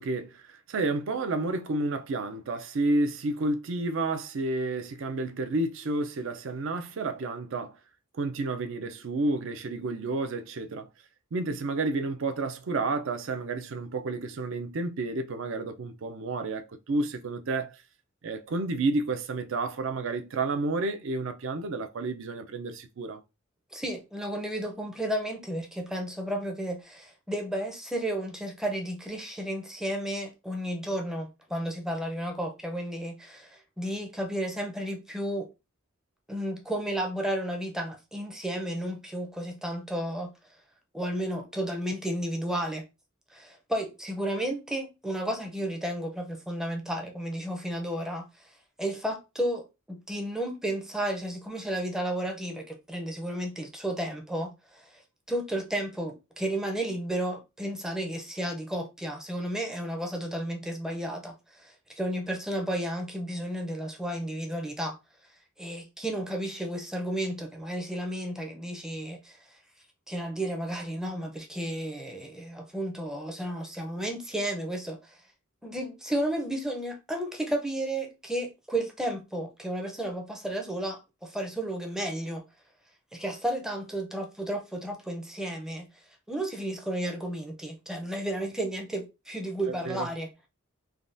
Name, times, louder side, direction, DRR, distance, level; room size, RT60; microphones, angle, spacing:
voice 1, 0.0-7.8 8.1-10.9 11.3-17.8 18.2-23.2 89.7-90.1, right 2 dB, 60° right, 0.4 m, -30 dB
voice 2, 23.7-35.5 36.3-40.3 40.9-42.8 43.3-48.3 48.8-55.0 55.3-65.0 65.6-69.4 70.1-75.2 75.6-82.4 83.1-85.9 86.3-90.3, right 1 dB, 5° right, 0.5 m, -33 dB
3.4 x 2.3 x 2.5 m
head